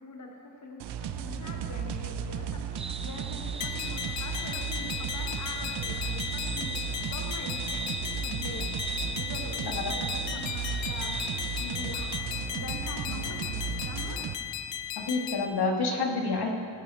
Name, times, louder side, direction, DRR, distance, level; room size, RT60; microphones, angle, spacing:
voice 1, 0.0-14.3, left 2 dB, 40° left, 1 dB, 1.2 m, -43 dB
sound 1, 0.8-14.3, right 7 dB, 70° right, 0.6 m, -35 dB
sound 2, 2.8-12.2, right 4 dB, 15° right, 0.4 m, -39 dB
sound 3, 3.6-15.5, left 10 dB, 80° left, 0.6 m, -36 dB
voice 2, 15.0-16.5, left 3 dB, 60° left, 2 dB, 1.6 m, -29 dB
16.0 x 9.1 x 4.3 m, 2.4 s
cardioid pair, 95°, 43 cm